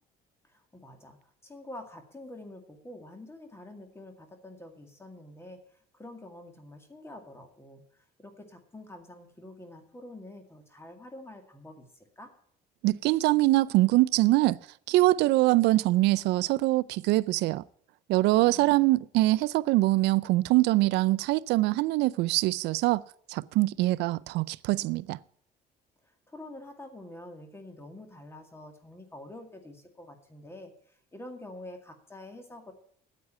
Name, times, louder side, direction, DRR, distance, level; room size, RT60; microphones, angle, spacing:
voice 1, 0.4-12.3 18.3-18.9 26.0-32.7, left 1 dB, 15° left, 2.1 m, -47 dB
voice 2, 12.8-14.6 14.9-17.6 18.1-23.0 23.3-25.2, right 18 dB, 85° right, 0.5 m, -23 dB
9.7 x 8.4 x 8.6 m
cardioid pair, 110°, 17 cm